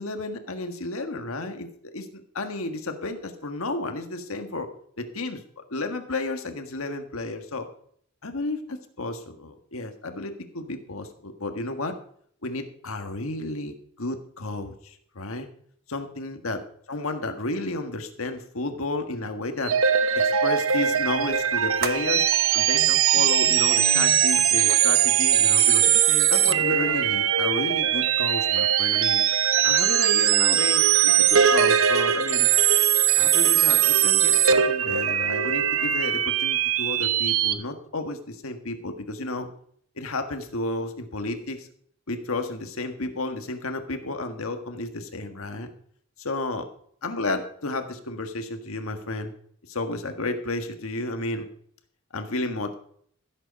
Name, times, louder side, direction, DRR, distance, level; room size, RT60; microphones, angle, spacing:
voice 1, 0.0-4.7 5.0-7.7 8.2-12.0 12.4-15.5 15.9-16.6 16.9-19.8 20.1-22.3 22.5-25.9 26.3-29.2 29.6-32.5 33.2-39.5 40.0-41.7 42.1-45.7 46.2-46.7 47.0-49.3 49.7-51.5 52.1-52.7, left 2 dB, 75° left, 6 dB, 1.6 m, -32 dB
sound 1, 19.6-37.5, right 9 dB, 70° right, 0.9 m, -21 dB
sound 2, 20.7-27.2, right 5 dB, 45° right, 1.1 m, -39 dB
15.5 x 8.1 x 5.2 m, 0.62 s
head